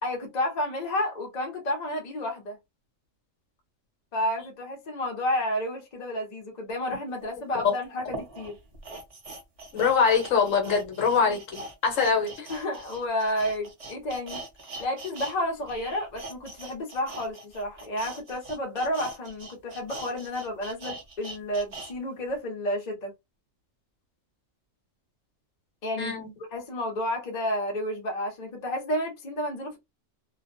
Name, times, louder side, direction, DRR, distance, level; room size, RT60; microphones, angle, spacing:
voice 1, 0.0-2.6 4.1-8.5 12.5-14.4 14.8-23.1 25.8-26.2 26.5-29.8, left 1 dB, 40° left, 0.8 m, -31 dB
sound 1, 7.2-7.3 8.0-15.4 15.6-21.9 22.3-22.4, right 2 dB, 35° right, 0.6 m, -42 dB
voice 2, 9.7-12.5 26.0-26.3, left 5 dB, 75° left, 1.2 m, -24 dB
2.5 x 2.2 x 2.5 m
omnidirectional pair, 1.4 m